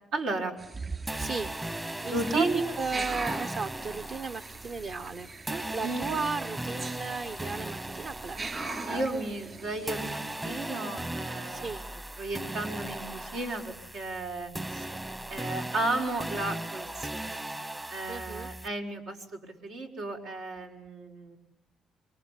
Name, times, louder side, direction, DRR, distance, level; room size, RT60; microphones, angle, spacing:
voice 1, 0.1-0.5 2.0-2.7 5.5-6.0 8.8-11.9 12.2-14.9 15.3-17.5 17.9-21.4, right 2 dB, 90° right, 2 dB, 5.3 m, -34 dB
sound 1, 0.6-10.5, right 3 dB, 35° right, 3.2 m, -40 dB
sound 2, 1.1-9.6 9.9-18.7, right 1 dB, 15° right, 1.0 m, -38 dB
voice 2, 1.2-1.7 2.0-2.5 2.8-5.3 5.7-8.4 11.4-11.8 18.1-18.5, right 4 dB, 50° right, 10 dB, 1.2 m, -35 dB
28.5 x 23.0 x 8.6 m, 0.83 s
cardioid pair, 90°, 0 cm